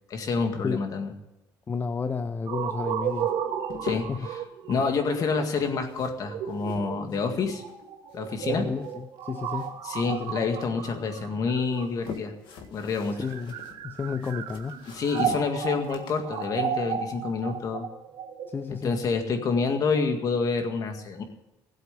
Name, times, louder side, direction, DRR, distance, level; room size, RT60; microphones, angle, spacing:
voice 1, 0.1-1.1 3.8-4.1 4.7-7.6 8.1-8.7 9.8-12.3 12.7-13.2 14.9-17.9 18.8-21.2, left 4 dB, 45° left, 5 dB, 2.0 m, -28 dB
voice 2, 1.7-3.3 4.1-4.3 8.5-9.8 10.1-10.4 13.2-13.6 13.8-14.9 18.5-19.1, left 5 dB, 25° left, 10 dB, 0.5 m, -32 dB
sound 1, 2.5-12.3 13.1-20.0, right 8 dB, 75° right, 1.8 m, -34 dB
sound 2, 3.1-4.4 5.5-7.8 8.1-9.9 10.2-11.1 11.6-17.7, left 6 dB, 70° left, 1.8 m, -43 dB
16.5 x 7.9 x 8.4 m, 0.95 s
cardioid pair, 140°, 8 cm